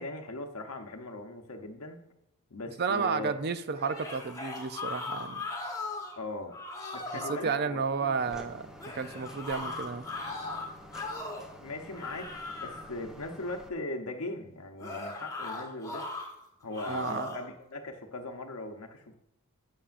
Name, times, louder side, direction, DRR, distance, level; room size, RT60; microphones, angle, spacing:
voice 1, 0.0-2.0 2.5-3.3 6.2-6.6 6.9-8.4 11.6-16.1 16.6-19.1, left 2 dB, 70° left, 4 dB, 0.9 m, -39 dB
voice 2, 2.8-5.5 7.3-8.7 8.9-10.1 16.9-17.3, right 5 dB, 45° right, 12 dB, 0.5 m, -32 dB
sound 1, 3.8-6.2 6.5-7.4 8.8-11.5 11.9-12.9 14.8-16.3 16.7-17.5, left 2 dB, 15° left, 1.3 m, -38 dB
sound 2, 8.2-13.7, equal, 5° right, 0.8 m, -49 dB
11.5 x 8.3 x 2.5 m, 0.83 s
head